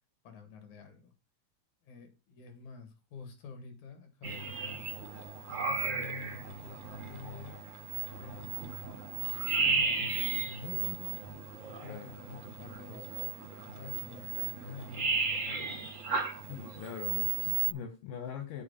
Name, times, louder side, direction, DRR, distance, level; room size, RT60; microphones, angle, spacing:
voice 1, 0.2-1.1 1.8-4.9 5.5-7.6 8.2-8.6 9.3-11.2 11.7-13.1 13.6-15.8, left 5 dB, 65° left, 6 dB, 3.6 m, -47 dB
sound 1, 4.2-17.7, right 5 dB, 85° right, 0.6 m, -35 dB
voice 2, 11.8-12.2 16.5-18.6, left 8 dB, 80° left, 5 dB, 2.8 m, -42 dB
7.7 x 4.9 x 7.2 m, 0.29 s
omnidirectional pair, 3.8 m